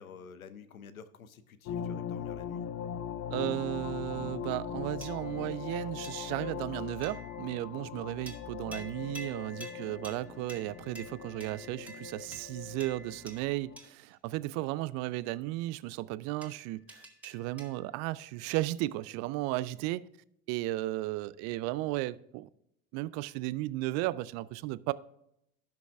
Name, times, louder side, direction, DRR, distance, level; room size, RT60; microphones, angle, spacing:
voice 1, 0.0-2.6, left 6 dB, 85° left, 0.8 m, -50 dB
sound 1, 1.6-13.8, left 8 dB, 35° left, 0.6 m, -40 dB
voice 2, 3.3-20.1 20.5-22.5 22.9-24.9, right 17 dB, 40° right, 0.4 m, -35 dB
sound 2, 5.0-5.5 6.0-6.5 7.0-7.5 8.3-14.1 16.4-18.0, equal, 5° right, 1.8 m, -50 dB
16.5 x 6.0 x 2.4 m
figure-of-eight pair, 75°, 41 cm